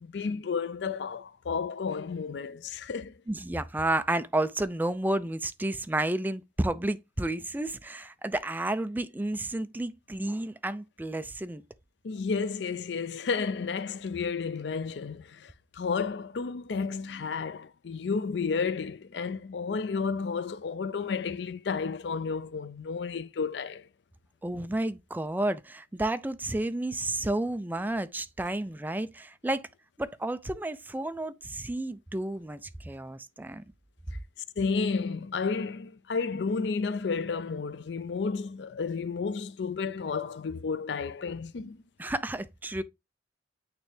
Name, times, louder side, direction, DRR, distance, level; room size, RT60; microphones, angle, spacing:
voice 1, 0.0-3.2 12.0-23.9 34.6-41.8, left 5 dB, 75° left, 0.5 m, -32 dB
voice 2, 3.3-11.6 24.4-29.7 30.0-33.6 42.0-42.8, right 1 dB, 10° right, 0.4 m, -31 dB
8.8 x 3.3 x 3.4 m
head